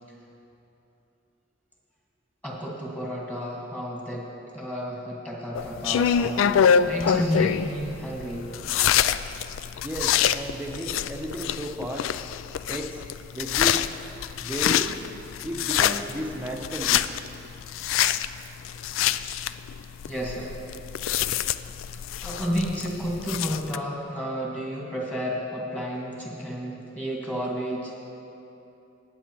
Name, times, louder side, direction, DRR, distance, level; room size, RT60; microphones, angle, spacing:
voice 1, 2.4-8.5 20.1-20.5 22.2-27.9, equal, 10° left, -3 dB, 1.7 m, -31 dB
sound 1, 5.6-23.8, left 8 dB, 85° left, 0.3 m, -26 dB
voice 2, 9.8-12.1 12.7-13.0 13.3-13.8 14.4-15.0 15.4-17.2, right 1 dB, 10° right, 0 dB, 0.7 m, -33 dB
19.5 x 8.3 x 3.0 m, 2.9 s
head